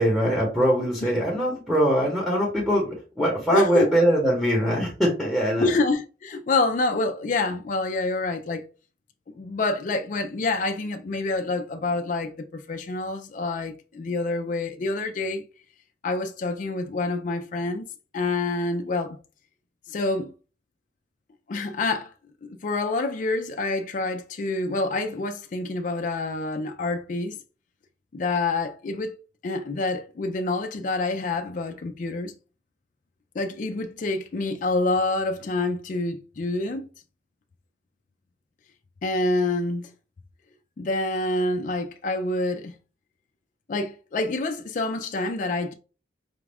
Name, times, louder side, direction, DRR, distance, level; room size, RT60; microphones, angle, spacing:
voice 1, 0.0-2.9 3.2-5.7, equal, ahead, 0.9 m, -22 dB
voice 2, 3.5-3.9 5.6-8.7 9.4-15.4 16.0-17.8 18.1-19.2 19.9-20.3 21.5-22.1 22.4-27.4 28.1-29.2 29.4-32.3 33.4-36.9 39.0-39.9 40.8-42.8 43.7-45.7, left 2 dB, 45° left, 0.4 m, -27 dB
5.0 x 2.3 x 3.4 m
head